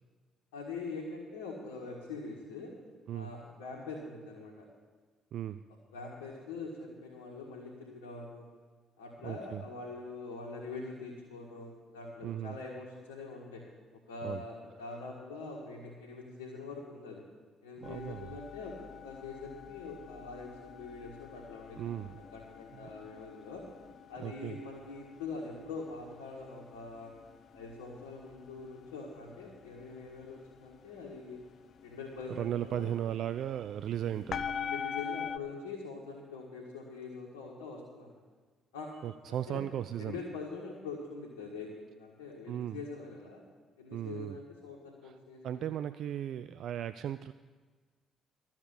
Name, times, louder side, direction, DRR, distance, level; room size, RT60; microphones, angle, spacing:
voice 1, 0.5-2.7 3.1-4.7 5.9-8.5 9.0-13.6 13.9-17.2 17.6-23.7 24.1-27.1 27.5-31.4 31.8-33.0 34.0-38.1 38.7-38.9 39.2-39.6 40.0-43.4 43.8-45.7, left 3 dB, 80° left, -3 dB, 1.7 m, -44 dB
voice 2, 9.2-9.6 12.2-12.5 14.2-14.4 17.8-18.3 21.8-22.2 24.2-24.6 32.3-34.5 39.0-40.2 42.5-42.8 43.9-44.4 45.0-45.2 45.4-47.3, right 11 dB, 60° right, 12 dB, 0.3 m, -36 dB
sound 1, 17.8-35.4, left 7 dB, 55° left, 0.5 m, -45 dB
13.5 x 7.2 x 8.4 m, 1.4 s
hypercardioid pair, 45°, 0 cm